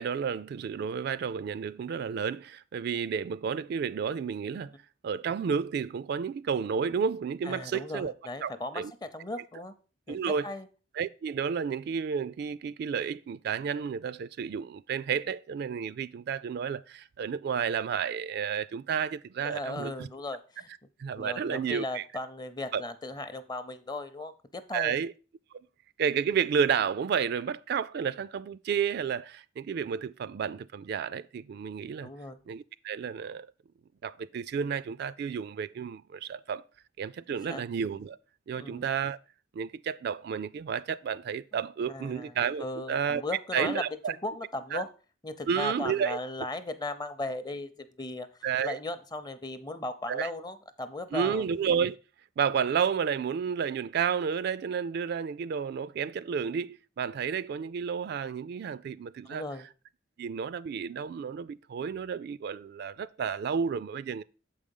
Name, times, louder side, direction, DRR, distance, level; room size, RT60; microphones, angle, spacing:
voice 1, 0.0-4.7 5.0-8.1 8.4-8.9 10.1-10.5 11.0-20.1 21.0-22.0 22.7-22.8 24.7-25.1 26.0-32.1 32.5-33.5 34.0-36.6 37.0-38.2 38.5-39.2 39.5-43.2 43.5-44.1 44.7-44.8 45.5-46.2 48.4-48.8 50.1-50.3 51.1-52.0 52.4-59.4 60.2-64.2, right 7 dB, 60° right, 0.3 m, -31 dB
voice 2, 7.4-9.7 10.1-10.7 19.4-20.7 21.2-25.0 32.0-32.4 37.3-37.6 38.5-38.9 41.9-42.3 42.6-44.9 45.2-48.3 48.6-51.4 59.2-59.7, left 2 dB, 20° left, 0.6 m, -37 dB
7.1 x 5.0 x 5.3 m
head